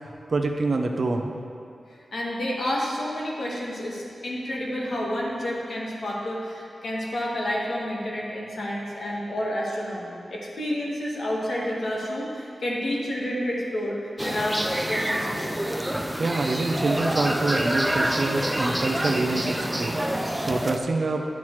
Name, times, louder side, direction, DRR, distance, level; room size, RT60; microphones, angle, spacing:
voice 1, 0.3-1.3 16.2-20.0 20.5-21.2, right 3 dB, 50° right, 3 dB, 0.6 m, -26 dB
voice 2, 2.1-14.0 14.2-14.6 14.9-15.6, left 1 dB, 70° left, -4 dB, 1.5 m, -29 dB
sound 1, 14.2-20.8, right 1 dB, 5° right, 0.4 m, -27 dB
10.5 x 7.2 x 3.2 m, 2.5 s
wide cardioid pair, 130°, 0 cm